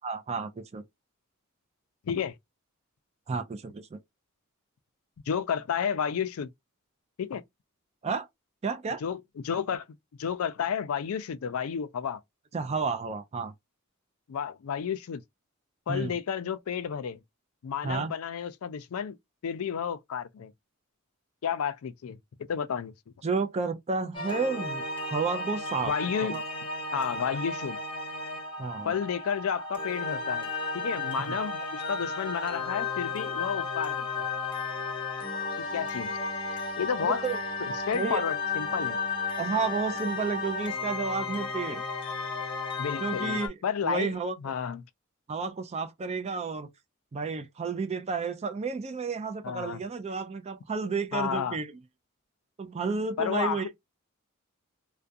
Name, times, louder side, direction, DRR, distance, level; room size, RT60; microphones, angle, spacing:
voice 1, 0.0-0.8 3.3-4.0 8.0-8.3 8.6-9.0 12.5-13.5 15.9-16.1 17.8-18.1 23.2-25.9 26.2-26.4 28.6-28.9 37.0-37.4 37.9-38.2 39.4-41.8 43.0-43.6 43.8-44.3 45.3-46.7 47.1-51.7 52.6-53.7, right 4 dB, 30° right, 0.4 m, -31 dB
voice 2, 5.3-6.5 7.2-7.4 9.0-9.9 10.2-12.2 14.3-15.2 15.9-17.2 17.6-19.2 19.4-20.5 21.4-22.2 22.5-22.9 25.8-26.4 26.9-27.8 28.8-30.5 30.7-34.3 35.7-36.2 36.8-37.2 37.7-39.0 42.8-44.8 49.4-49.8 51.1-51.6 53.2-53.7, left 7 dB, 75° left, 0.4 m, -31 dB
sound 1, 24.1-43.5, left 4 dB, 25° left, 0.7 m, -33 dB
2.3 x 2.2 x 2.5 m
head